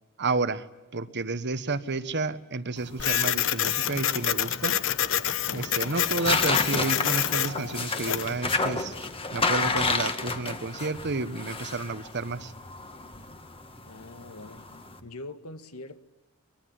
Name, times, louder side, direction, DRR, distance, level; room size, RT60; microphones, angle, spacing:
voice 1, 0.2-0.7 0.9-4.7 5.5-8.9 9.3-12.5, right 3 dB, 50° right, 1.3 m, -31 dB
sound 1, 2.8-15.0, left 3 dB, 25° left, 1.9 m, -31 dB
Printer, 3.0-8.4, left 10 dB, 60° left, 1.1 m, -27 dB
voice 2, 13.9-14.7 15.0-16.0, left 2 dB, 80° left, 1.8 m, -43 dB
24.0 x 21.5 x 9.6 m
head